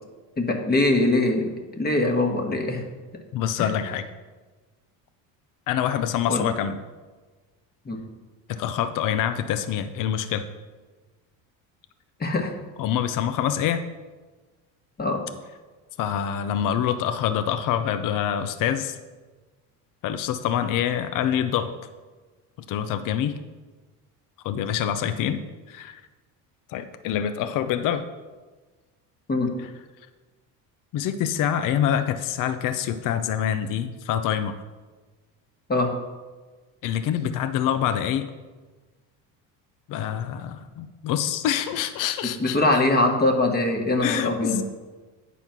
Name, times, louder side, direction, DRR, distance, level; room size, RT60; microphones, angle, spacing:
voice 1, 0.4-2.8 3.6-3.7 6.3-6.5 7.8-8.0 12.2-12.5 15.0-15.2 29.3-29.5 35.7-35.9 42.4-44.6, left 2 dB, 25° left, 2 dB, 1.4 m, -22 dB
voice 2, 3.3-4.0 5.7-6.8 8.5-10.5 12.8-13.8 16.0-19.0 20.0-21.7 22.7-23.3 24.4-25.4 25.7-26.0 26.7-28.0 30.9-34.5 36.8-38.3 39.9-42.6 44.0-44.6, left 9 dB, 50° left, 10 dB, 0.6 m, -26 dB
9.1 x 4.2 x 5.9 m, 1.3 s
supercardioid pair, 100°, 40 cm